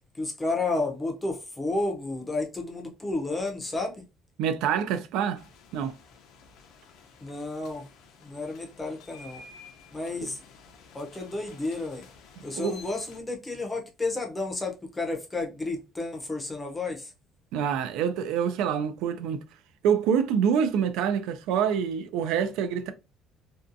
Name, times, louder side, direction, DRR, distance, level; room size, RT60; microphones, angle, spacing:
voice 1, 0.1-4.0 7.2-7.9 8.2-9.4 9.9-10.4 10.9-12.0 12.4-17.1, left 2 dB, 10° left, 0.5 m, -31 dB
voice 2, 4.4-5.4 5.7-5.9 12.5-12.8 17.5-19.4 19.8-22.9, right 7 dB, 75° right, 0.4 m, -26 dB
sound 1, 5.3-13.2, left 4 dB, 65° left, 0.5 m, -52 dB
2.6 x 2.3 x 2.5 m
cardioid pair, 170°, 0 cm